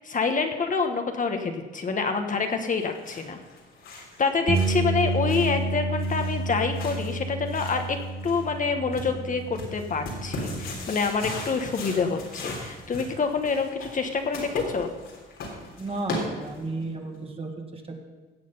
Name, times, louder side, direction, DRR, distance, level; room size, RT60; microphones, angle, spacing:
voice 1, 0.0-3.4 3.9-14.9, left 4 dB, 40° left, 5 dB, 1.2 m, -27 dB
sound 1, 2.7-16.8, left 2 dB, 90° left, 3.6 m, -39 dB
sound 2, 4.5-10.7, right 3 dB, 60° right, 1.8 m, -30 dB
voice 2, 15.6-18.0, right 2 dB, 30° right, 3 dB, 2.0 m, -34 dB
16.0 x 7.6 x 5.5 m, 1.2 s
cardioid pair, 90°, 20 cm